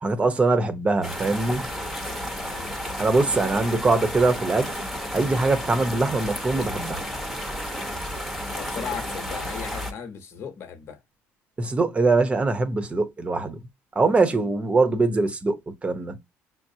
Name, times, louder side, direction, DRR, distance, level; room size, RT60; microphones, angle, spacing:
voice 1, 0.0-1.7 3.0-4.7 5.1-7.0 11.6-13.7 13.9-16.2, right 3 dB, 20° right, 0.9 m, -22 dB
sound 1, 1.0-9.9, equal, ahead, 1.0 m, -32 dB
voice 2, 2.3-2.7 8.5-11.0, left 7 dB, 50° left, 1.1 m, -37 dB
6.0 x 2.0 x 2.8 m
cardioid pair, 110°, 5 cm